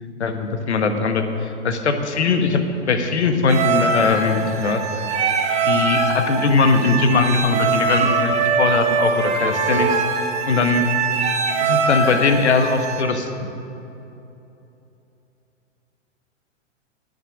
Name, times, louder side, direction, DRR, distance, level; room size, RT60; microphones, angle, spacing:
voice 1, 0.2-2.6 2.9-5.2 5.6-8.3 8.6-10.8 11.6-13.5, left 4 dB, 65° left, 7 dB, 1.4 m, -20 dB
sound 1, 3.5-13.0, right 4 dB, 20° right, 1.1 m, -22 dB
19.0 x 6.8 x 6.3 m, 2.9 s
figure-of-eight pair, 110°, 36 cm